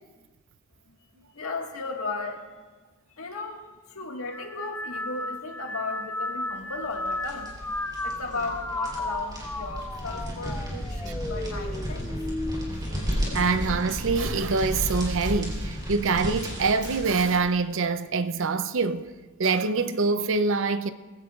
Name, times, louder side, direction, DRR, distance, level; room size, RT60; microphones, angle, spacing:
voice 1, 1.3-2.6 3.2-7.6 8.0-12.1, left 3 dB, 70° left, 1.7 m, -35 dB
sound 1, 4.3-13.9 14.4-14.9 15.9-16.3, left 2 dB, 10° left, 0.3 m, -35 dB
sound 2, 6.8-17.5, equal, 20° right, 3.6 m, -33 dB
voice 2, 13.3-19.1 19.4-20.9, right 4 dB, 60° right, 0.6 m, -25 dB
21.0 x 16.0 x 2.4 m
head